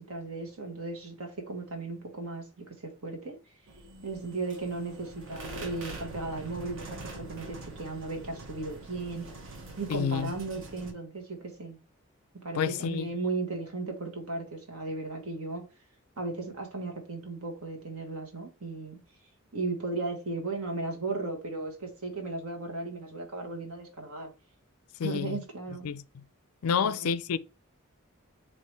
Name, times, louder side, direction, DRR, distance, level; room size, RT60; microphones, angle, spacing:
voice 1, 0.0-3.4 4.0-9.2 9.8-11.8 12.4-15.7 16.2-19.0 19.5-24.3 25.0-25.9 26.7-27.1, right 3 dB, 80° right, 1.4 m, -36 dB
sound 1, 3.7-10.9, right 2 dB, 60° right, 1.0 m, -44 dB
voice 2, 9.9-10.3 12.5-13.1 25.0-25.4 25.8-26.0 26.6-27.4, left 7 dB, 85° left, 0.4 m, -29 dB
4.5 x 2.9 x 3.2 m
head